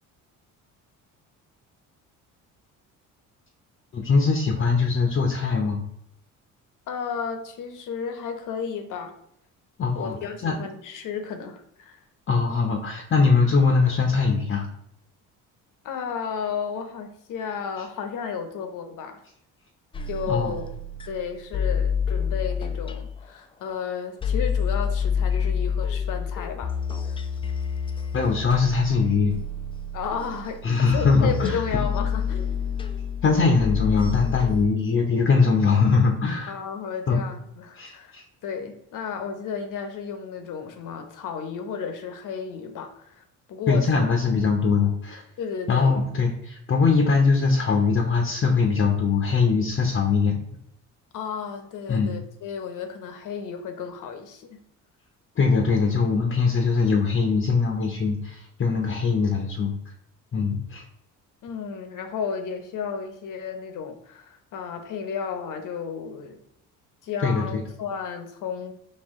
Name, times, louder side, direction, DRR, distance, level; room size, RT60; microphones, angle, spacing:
voice 1, 3.9-5.8 9.8-10.2 10.4-10.6 12.3-14.7 20.3-20.5 28.1-29.4 30.6-31.6 33.2-36.5 37.1-37.2 37.8-38.2 43.7-45.2 45.7-50.4 51.9-52.2 55.4-59.7 60.3-60.8 67.2-67.6, left 4 dB, 35° left, 2 dB, 0.7 m, -21 dB
voice 2, 6.9-9.1 9.9-12.0 15.8-19.2 20.1-20.7 21.1-26.7 27.0-27.2 29.9-30.6 30.9-32.6 36.5-38.2 38.4-44.0 45.4-46.0 51.1-54.6 61.4-66.4 67.0-68.7, left 6 dB, 60° left, 6 dB, 0.9 m, -33 dB
sound 1, 19.9-23.3 23.7-23.8 24.2-34.6, left 6 dB, 15° left, 0.3 m, -28 dB
4.4 x 2.8 x 3.6 m, 0.77 s
cardioid pair, 90°, 34 cm